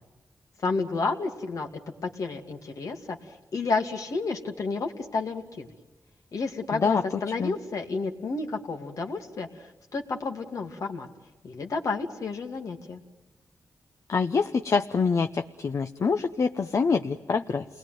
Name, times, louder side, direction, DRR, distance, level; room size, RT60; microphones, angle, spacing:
voice 1, 0.6-1.7 2.0-5.7 6.3-11.1 11.4-13.0, left 4 dB, 75° left, 3 dB, 2.5 m, -31 dB
voice 2, 6.7-7.0 7.4-7.5 14.1-17.6, left 5 dB, 60° left, 7 dB, 0.9 m, -25 dB
29.5 x 20.5 x 9.3 m, 1.1 s
cardioid pair, 80°, 6 cm